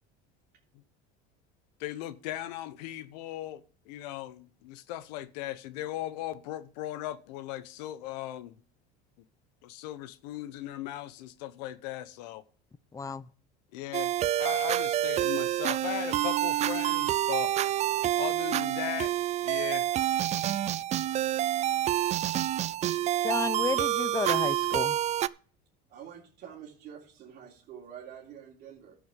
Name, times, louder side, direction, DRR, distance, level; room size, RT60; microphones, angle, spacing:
voice 1, 1.8-8.6 9.6-12.4 13.7-14.1 14.4-17.5 18.2-19.1 19.4-19.9, left 14 dB, 85° left, 1.0 m, -38 dB
voice 2, 12.9-13.3 23.2-25.0, left 5 dB, 15° left, 0.5 m, -32 dB
sound 1, 13.9-25.3, right 13 dB, 35° right, 0.4 m, -28 dB
voice 3, 25.9-29.0, right 9 dB, 55° right, 3.4 m, -47 dB
12.0 x 7.0 x 5.2 m
supercardioid pair, 120°, 21 cm